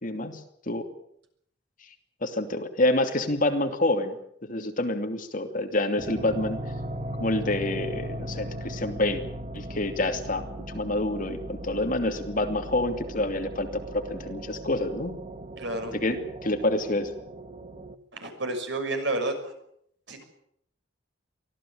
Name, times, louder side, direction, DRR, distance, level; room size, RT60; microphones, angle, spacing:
voice 1, 0.0-0.4 0.7-0.8 2.2-4.2 4.5-6.6 7.2-9.2 9.5-10.4 10.7-15.1 15.9-17.1, left 1 dB, 45° left, 5 dB, 2.8 m, -27 dB
sound 1, 6.0-18.0, right 1 dB, 35° right, 1.2 m, -38 dB
voice 2, 15.6-15.9 18.1-19.5 20.1-20.2, right 2 dB, 70° right, 5 dB, 6.3 m, -30 dB
24.5 x 16.0 x 8.9 m, 0.71 s
head